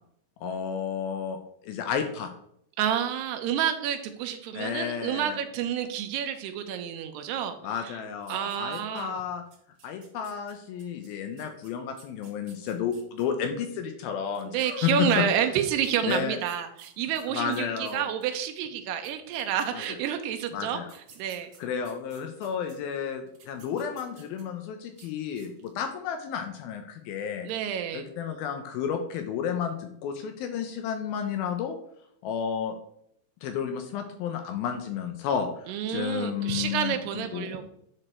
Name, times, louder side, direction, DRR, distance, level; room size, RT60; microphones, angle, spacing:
voice 1, 0.4-1.4 1.6-2.3 4.5-5.4 7.6-9.4 9.8-15.2 16.0-16.4 17.3-18.1 19.7-19.8 20.5-20.9 21.6-27.5 27.9-31.8 32.2-32.8 33.4-37.7, left 7 dB, 80° left, 6 dB, 2.3 m, -32 dB
voice 2, 2.8-7.6 7.8-7.9 8.3-9.2 14.5-20.8 21.2-21.5 27.4-28.1 35.7-37.7, right 9 dB, 80° right, 7 dB, 2.8 m, -29 dB
sound 1, 8.2-9.2 9.5-13.2 14.2-15.1 15.8-18.3 18.8-18.9 19.0-20.2 20.8-22.7 23.3-24.6 24.9-25.1 25.4-25.8, right 6 dB, 65° right, 1.5 m, -55 dB
10.5 x 5.0 x 4.4 m, 0.72 s
omnidirectional pair, 4.8 m